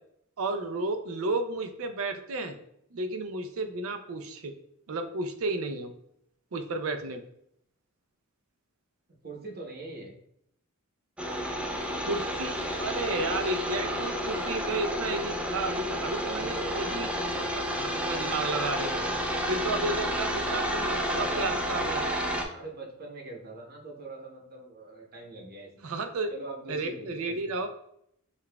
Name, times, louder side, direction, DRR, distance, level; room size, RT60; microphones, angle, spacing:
voice 1, 0.4-2.6 2.9-4.5 4.9-5.9 6.5-7.2 12.1-17.1 17.5-18.9 19.5-22.2 25.8-26.3 26.7-27.7, right 2 dB, 70° right, 7 dB, 0.5 m, -32 dB
voice 2, 9.2-10.1 16.2-17.3 17.9-18.1 18.9-19.4 21.1-21.5 22.3-26.0 26.3-27.6, right 2 dB, 45° right, 0 dB, 0.8 m, -42 dB
sound 1, 11.2-22.4, equal, 5° right, 0.4 m, -31 dB
6.6 x 2.3 x 2.2 m, 0.73 s
head